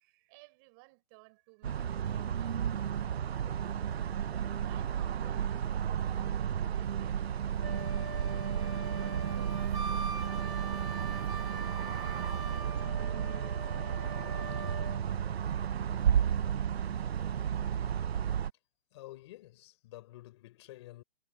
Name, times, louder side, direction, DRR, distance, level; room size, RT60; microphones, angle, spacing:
voice 1, 0.0-8.5 8.9-13.6, right 29 dB, 20° right, 6.6 m, -59 dB
sound 1, 1.6-18.5, right 8 dB, 90° right, 1.0 m, -33 dB
Wind instrument woodwind instrument, 7.6-15.0, right 2 dB, ahead, 0.4 m, -42 dB
voice 2, 18.9-21.0, left 16 dB, 30° left, 4.9 m, -50 dB
hypercardioid pair, 175°, 30 cm